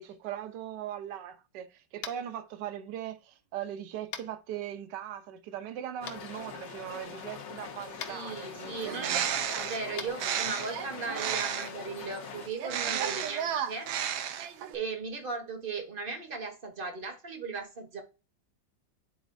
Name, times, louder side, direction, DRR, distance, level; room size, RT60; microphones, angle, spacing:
voice 1, 0.0-9.3, right 10 dB, 65° right, 1.3 m, -40 dB
Tap, 2.0-2.3 4.1-4.3 6.1-6.2 8.0-8.1 9.9-10.1, left 8 dB, 80° left, 1.6 m, -39 dB
sound 1, 6.0-12.5, left 6 dB, 55° left, 0.8 m, -43 dB
voice 2, 8.1-9.1 9.5-13.9 14.7-18.0, right 4 dB, 35° right, 0.9 m, -37 dB
Bird, 8.7-11.9 12.6-14.8, right 9 dB, 90° right, 1.5 m, -32 dB
10.5 x 4.2 x 2.5 m
omnidirectional pair, 2.2 m